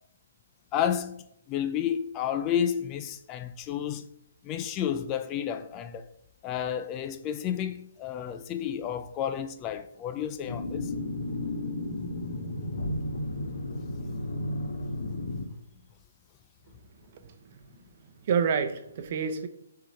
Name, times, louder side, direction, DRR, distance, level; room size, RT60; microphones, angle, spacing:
voice 1, 0.7-1.2 1.5-4.0 4.4-6.1 6.4-10.9, left 9 dB, 20° left, 0.3 m, -31 dB
sound 1, 10.5-15.5, left 1 dB, 65° left, 1.3 m, -33 dB
voice 2, 17.1-17.7 18.2-19.5, right 6 dB, 35° right, 0.8 m, -29 dB
8.4 x 3.8 x 4.3 m
hypercardioid pair, 165°, 0 cm